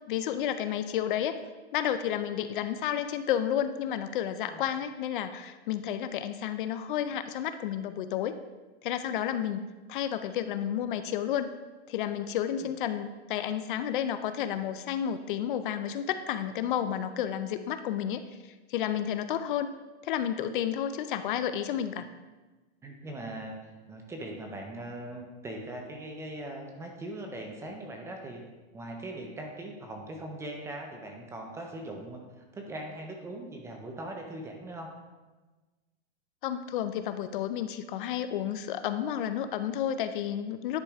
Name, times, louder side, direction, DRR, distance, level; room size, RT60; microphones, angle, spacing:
voice 1, 0.1-1.4 1.7-8.4 8.8-11.5 11.9-18.2 18.7-19.7 20.0-22.1 36.4-40.8, left 10 dB, 50° left, 11 dB, 0.5 m, -31 dB
voice 2, 22.8-23.6 23.9-28.4 28.7-34.9, right 1 dB, 10° right, 2 dB, 0.5 m, -40 dB
10.0 x 4.9 x 3.5 m, 1.2 s
supercardioid pair, 150°, 33 cm